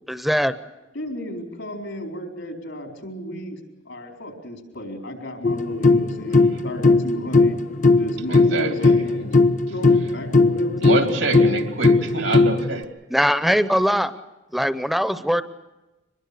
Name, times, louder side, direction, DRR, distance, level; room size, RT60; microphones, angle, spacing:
voice 1, 0.1-0.5 13.1-14.1 14.5-15.4, equal, ahead, 12 dB, 0.7 m, -21 dB
voice 2, 0.9-3.6 3.8-7.6 8.0-11.2, equal, 90° left, 2 dB, 4.3 m, -33 dB
sound 1, 5.4-12.8, left 3 dB, 45° left, 0.7 m, -18 dB
voice 3, 8.3-8.9 10.8-12.9, right 3 dB, 85° right, 4 dB, 2.9 m, -26 dB
24.0 x 21.5 x 6.7 m, 1.0 s
head